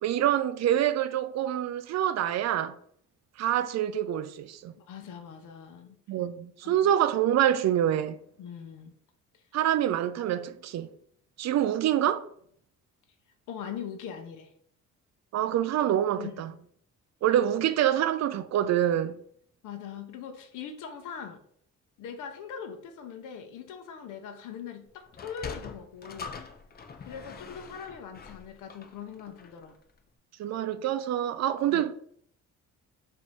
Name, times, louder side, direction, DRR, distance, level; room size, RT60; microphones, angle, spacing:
voice 1, 0.0-2.8 3.4-4.7 6.1-8.2 9.5-10.9 11.4-12.2 15.3-16.5 17.2-19.2 30.4-31.9, right 11 dB, 60° right, 0.5 m, -26 dB
voice 2, 4.8-6.0 6.6-6.8 8.4-8.9 9.3-9.4 13.5-14.5 16.2-16.6 19.6-21.4 22.0-26.4 27.0-29.8 31.6-31.8, left 7 dB, 90° left, 0.7 m, -41 dB
Sliding door, 25.1-29.7, left 5 dB, 30° left, 0.6 m, -43 dB
4.1 x 2.7 x 4.7 m
cardioid pair, 90°, 30 cm